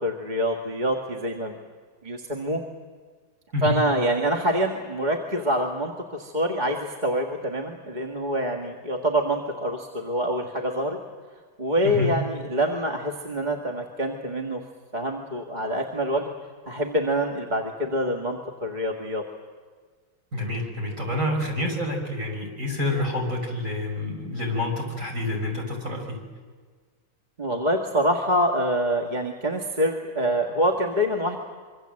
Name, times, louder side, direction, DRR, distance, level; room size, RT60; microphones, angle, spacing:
voice 1, 0.0-1.6 2.0-2.6 3.6-11.0 11.6-14.6 14.9-16.3 16.7-19.2 27.4-31.4, equal, 25° right, 1 dB, 2.0 m, -26 dB
voice 2, 3.5-3.8 11.8-12.1 20.3-26.2, left 2 dB, 40° right, 1 dB, 6.3 m, -28 dB
26.0 x 24.5 x 7.8 m, 1.5 s
omnidirectional pair, 2.1 m